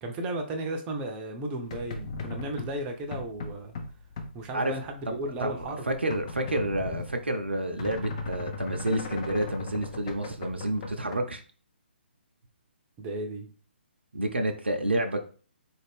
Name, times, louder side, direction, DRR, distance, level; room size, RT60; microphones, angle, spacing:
voice 1, 0.0-3.7 4.3-5.8 13.0-13.5, right 1 dB, 20° right, 4 dB, 0.5 m, -34 dB
sound 1, 1.6-11.2, left 3 dB, 35° left, 0.5 m, -38 dB
voice 2, 5.9-11.4 14.1-15.2, right 1 dB, 70° right, 5 dB, 0.6 m, -29 dB
4.1 x 2.5 x 3.3 m, 0.40 s
figure-of-eight pair, 135°, 6 cm